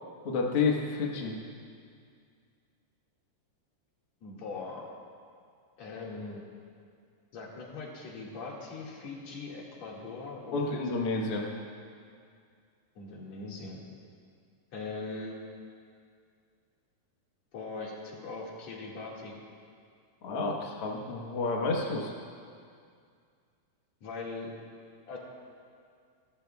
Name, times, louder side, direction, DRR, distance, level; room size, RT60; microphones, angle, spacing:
voice 1, 0.2-1.3 10.5-11.5 20.2-22.1, left 4 dB, 85° left, -1 dB, 1.2 m, -30 dB
voice 2, 4.2-4.9 5.8-6.4 7.3-10.8 13.0-13.8 14.7-15.4 17.5-19.4 24.0-24.5 25.0-25.2, left 3 dB, 50° left, -3 dB, 2.8 m, -40 dB
28.5 x 13.5 x 2.3 m, 2.2 s
omnidirectional pair, 4.6 m